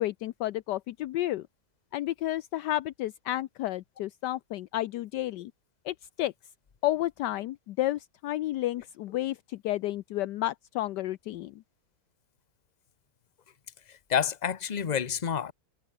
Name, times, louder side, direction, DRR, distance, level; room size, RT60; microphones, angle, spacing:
voice 1, 0.0-1.4 1.9-5.5 5.9-6.3 6.8-11.6, left 15 dB, 75° left, 1.2 m, -31 dB
voice 2, 13.9-15.5, left 8 dB, 40° left, 0.6 m, -29 dB
omnidirectional pair, 1.9 m